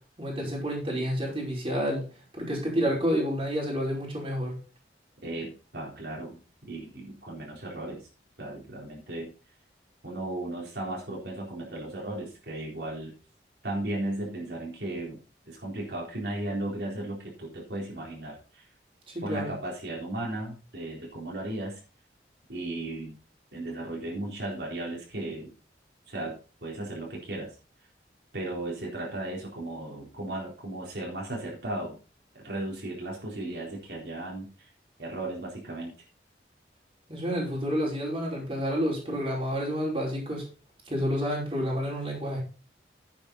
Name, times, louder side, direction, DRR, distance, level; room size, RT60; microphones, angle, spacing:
voice 1, 0.2-2.1 2.4-4.5 19.1-19.4 37.1-40.4 40.9-42.4, equal, 30° right, -3 dB, 5.1 m, -29 dB
voice 2, 5.2-8.1 8.4-9.3 10.0-13.1 13.6-15.2 15.5-18.6 19.2-21.8 22.5-23.2 23.5-25.5 26.1-27.5 28.3-32.0 32.3-34.7 35.0-35.9, right 1 dB, 70° right, -3 dB, 4.0 m, -35 dB
10.5 x 8.5 x 4.0 m, 0.35 s
head